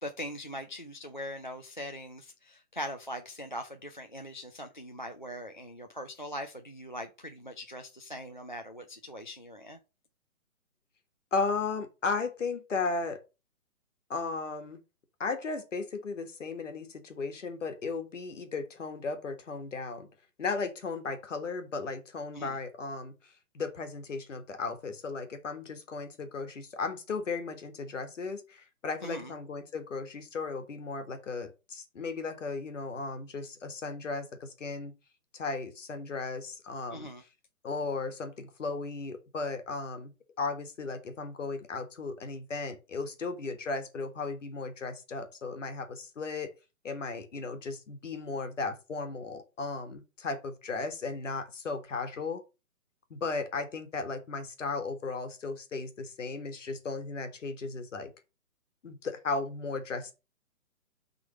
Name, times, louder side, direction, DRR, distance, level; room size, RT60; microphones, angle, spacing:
voice 1, 0.0-9.8 22.3-22.6 29.0-29.3 36.9-37.2, equal, 35° left, 0.4 m, -41 dB
voice 2, 11.3-13.2 14.1-14.8 15.2-20.1 20.4-34.9 35.3-37.1 37.6-46.5 46.8-52.4 53.1-58.1 58.8-60.1, left 4 dB, 60° left, 1.6 m, -35 dB
5.9 x 3.8 x 6.0 m
hypercardioid pair, 175°, 43 cm